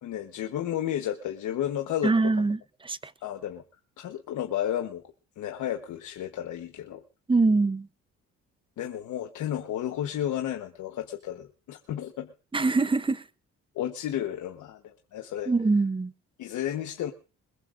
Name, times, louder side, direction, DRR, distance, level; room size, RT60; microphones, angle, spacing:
voice 1, 0.0-2.3 3.2-3.6 4.0-5.0 5.4-7.0 8.8-12.3 13.7-15.5 16.4-17.1, left 11 dB, 80° left, 1.2 m, -32 dB
voice 2, 2.0-3.1 7.3-7.9 12.5-13.2 15.5-16.1, right 3 dB, 15° right, 0.8 m, -24 dB
21.5 x 21.0 x 2.6 m
cardioid pair, 90°, 30 cm